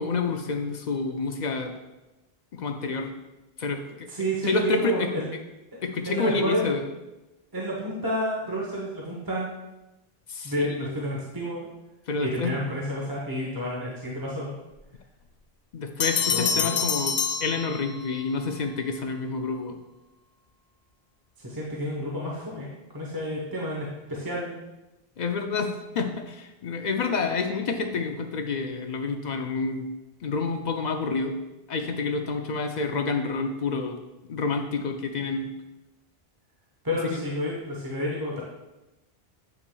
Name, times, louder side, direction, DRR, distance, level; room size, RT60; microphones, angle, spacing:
voice 1, 0.0-1.7 2.5-3.1 3.6-4.1 4.5-5.1 5.8-6.8 10.3-10.9 12.1-12.6 15.7-19.8 25.2-29.9 30.2-31.3 31.7-34.0 34.3-35.5 37.0-37.3, left 4 dB, 55° left, 5 dB, 0.5 m, -28 dB
voice 2, 4.1-5.3 6.1-6.7 7.5-9.5 10.4-11.7 12.2-14.5 16.3-16.7 21.4-22.7 22.9-24.6 36.8-38.4, equal, 20° right, -4 dB, 0.9 m, -30 dB
Bell, 16.0-18.2, left 6 dB, 85° left, 0.9 m, -27 dB
7.8 x 5.9 x 2.3 m, 1.0 s
omnidirectional pair, 1.1 m